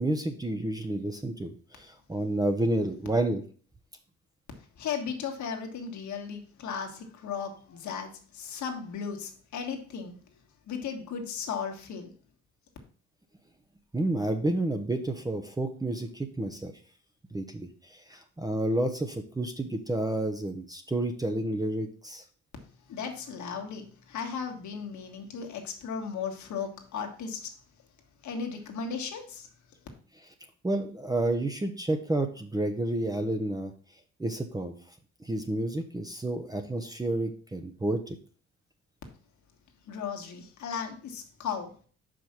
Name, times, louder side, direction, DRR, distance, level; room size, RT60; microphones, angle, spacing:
voice 1, 0.0-3.4 13.9-16.7 17.3-22.2 30.6-33.7 34.2-34.7 35.2-38.2, right 1 dB, 10° right, 5 dB, 0.8 m, -30 dB
voice 2, 4.8-10.1 10.7-12.1 22.9-27.5 28.2-29.5 39.9-41.7, left 6 dB, 70° left, 3 dB, 1.6 m, -36 dB
5.4 x 5.1 x 5.9 m, 0.43 s
cardioid pair, 90°, 30 cm